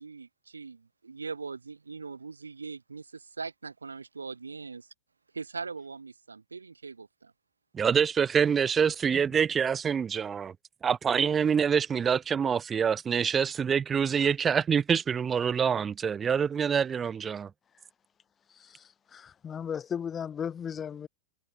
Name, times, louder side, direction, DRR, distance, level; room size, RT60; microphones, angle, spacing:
voice 1, 0.0-4.9 5.3-7.3, right 4 dB, 75° right, 3.1 m, -41 dB
voice 2, 7.7-10.5 10.8-17.5, right 7 dB, 20° right, 2.0 m, -26 dB
voice 3, 18.5-21.1, left 8 dB, 20° left, 1.2 m, -36 dB
figure-of-eight pair, 90°, 0 cm